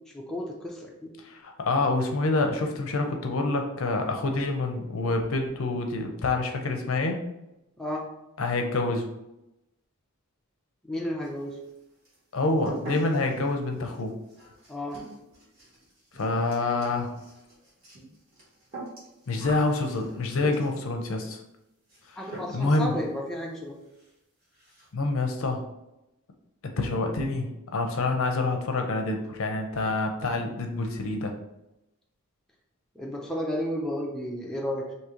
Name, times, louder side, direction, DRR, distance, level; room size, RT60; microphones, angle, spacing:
voice 1, 0.1-1.1 7.8-8.0 10.8-11.6 14.7-15.0 22.2-23.7 33.0-34.9, left 1 dB, 5° left, -3 dB, 0.4 m, -32 dB
voice 2, 1.2-7.2 8.4-9.1 12.3-14.1 16.1-17.1 19.3-21.4 22.1-23.0 24.9-25.6 26.6-31.3, left 2 dB, 65° left, 4 dB, 0.5 m, -27 dB
sound 1, 11.2-11.8 12.0-20.9 21.9-22.1 22.3-22.8 23.1-23.2 23.6-23.7 23.9-24.1 24.4-24.9, right 2 dB, 40° right, 1.4 m, -43 dB
3.0 x 2.7 x 3.6 m, 0.90 s
head